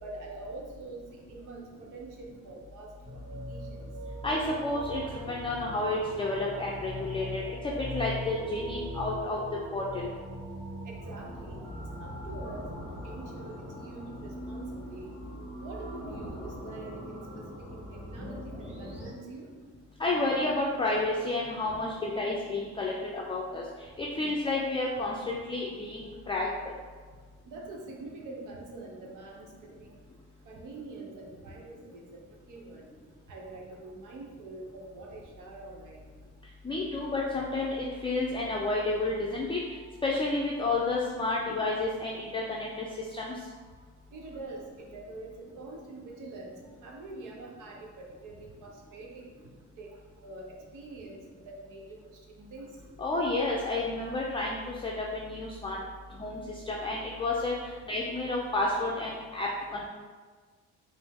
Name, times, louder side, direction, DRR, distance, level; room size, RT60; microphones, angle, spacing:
voice 1, 0.0-3.1 3.5-3.9 10.8-12.7 13.0-15.1 15.6-17.3 17.6-19.5 27.4-29.5 29.8-30.0 30.5-32.0 32.5-32.8 33.3-36.0 44.1-49.3 49.8-50.0 50.2-52.7, right 2 dB, 85° right, -1 dB, 0.8 m, -45 dB
sound 1, 3.0-19.1, equal, 5° right, 1.4 m, -40 dB
voice 2, 4.2-9.4 9.7-10.1 20.0-23.6 24.0-26.5 36.6-39.6 40.0-42.9 43.1-43.4 53.0-55.8 56.2-56.4 56.7-59.8, left 2 dB, 15° left, -3 dB, 0.4 m, -30 dB
5.0 x 2.0 x 3.5 m, 1.5 s
cardioid pair, 90°, 30 cm